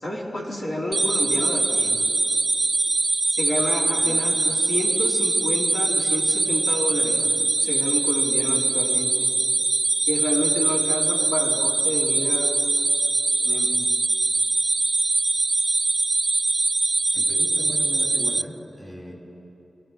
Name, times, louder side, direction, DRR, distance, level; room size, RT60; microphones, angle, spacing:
voice 1, 0.0-1.9 3.4-7.2 7.6-9.3 10.1-12.5 13.4-13.7, equal, 80° left, -4 dB, 3.0 m, -29 dB
sound 1, 0.9-18.4, right 3 dB, 45° right, 0.3 m, -22 dB
voice 2, 17.1-19.1, equal, 40° left, -3 dB, 4.6 m, -37 dB
24.0 x 14.0 x 3.8 m, 2.9 s
cardioid pair, 60°, 0 cm